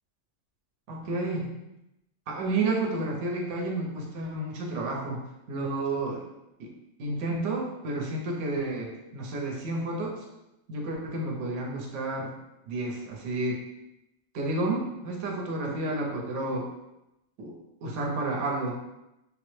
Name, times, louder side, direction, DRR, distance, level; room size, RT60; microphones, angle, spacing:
voice 1, 0.9-1.5 2.3-5.2 5.5-6.2 6.6-6.7 7.0-10.2 10.7-12.4 12.7-13.6 14.3-16.7 17.4-17.5 17.8-18.8, right 2 dB, 70° right, 0 dB, 1.0 m, -31 dB
3.5 x 2.0 x 3.1 m, 0.89 s
omnidirectional pair, 1.3 m